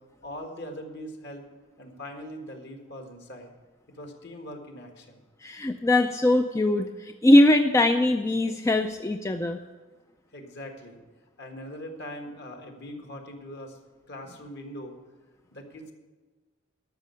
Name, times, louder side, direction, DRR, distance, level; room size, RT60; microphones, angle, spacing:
voice 1, 0.2-1.4 1.8-3.5 3.9-5.2 10.3-11.0 11.4-13.8 14.1-15.0 15.5-15.9, equal, 55° left, 4 dB, 1.7 m, -41 dB
voice 2, 5.4-9.6, left 1 dB, 15° left, 6 dB, 0.4 m, -21 dB
12.5 x 6.5 x 8.3 m, 1.3 s
head